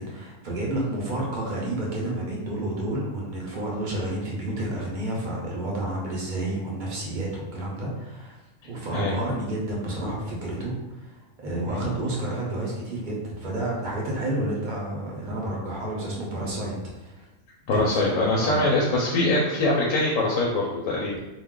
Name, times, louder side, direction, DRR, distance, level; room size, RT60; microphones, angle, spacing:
voice 1, 0.0-8.4 8.6-17.2 17.7-18.7, right 1 dB, 45° right, -3 dB, 0.7 m, -30 dB
voice 2, 17.7-21.2, left 2 dB, 90° left, -3 dB, 1.0 m, -23 dB
2.4 x 2.2 x 3.6 m, 1.1 s
omnidirectional pair, 1.4 m